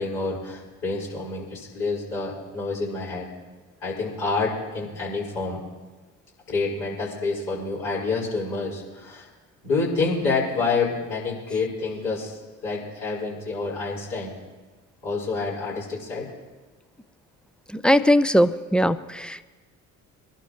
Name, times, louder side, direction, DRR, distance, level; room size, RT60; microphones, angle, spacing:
voice 1, 0.0-3.3 3.8-5.6 6.5-9.3 9.6-14.3 15.0-16.3, left 3 dB, 70° left, -7 dB, 5.1 m, -28 dB
voice 2, 17.7-19.4, equal, ahead, 15 dB, 0.3 m, -20 dB
23.0 x 12.0 x 3.2 m, 1.3 s
hypercardioid pair, 50°, 43 cm